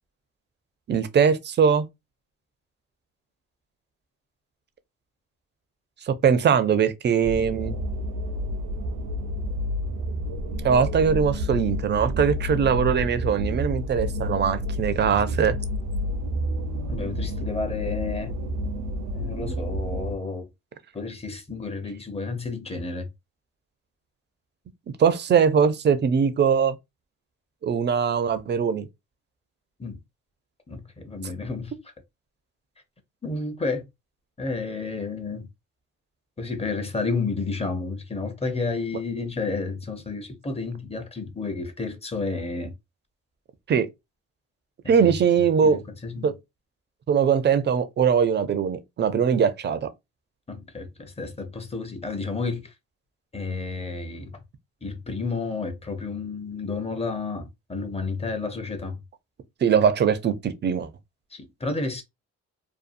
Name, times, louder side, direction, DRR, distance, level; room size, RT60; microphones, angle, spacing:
voice 1, 0.9-1.9 6.1-7.8 10.6-15.6 25.0-26.8 27.6-28.9 43.7-43.9 44.9-45.8 46.2-46.3 47.1-49.9 59.6-60.9, right 7 dB, 40° right, 0.4 m, -21 dB
sound 1, 7.2-20.2, equal, 80° right, 0.6 m, -29 dB
voice 2, 16.9-18.4 19.1-20.5 20.9-23.1 29.8-30.0 30.7-31.7 33.2-33.9 34.4-35.5 36.4-42.7 44.8-45.2 45.6-46.3 50.5-52.7 53.3-54.4 54.8-59.0 61.3-62.0, left 4 dB, 20° left, 0.6 m, -31 dB
2.6 x 2.3 x 2.5 m
cardioid pair, 100°, 29 cm